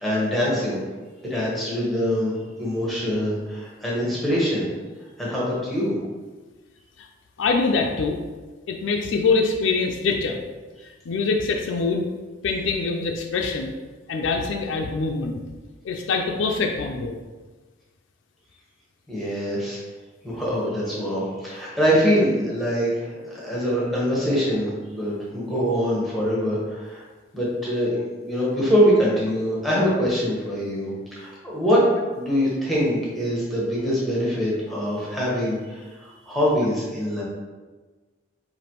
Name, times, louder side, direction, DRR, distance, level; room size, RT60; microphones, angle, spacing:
voice 1, 0.0-0.8 1.2-2.3 2.6-4.6 5.2-5.9 19.1-19.8 20.2-24.7 25.0-27.0 27.3-37.2, equal, ahead, -6 dB, 1.0 m, -24 dB
voice 2, 7.4-8.2 8.7-10.4 10.8-12.1 12.4-13.8 14.1-15.4 15.8-17.2, left 4 dB, 75° left, 3 dB, 0.4 m, -24 dB
5.0 x 2.6 x 2.9 m, 1.3 s
head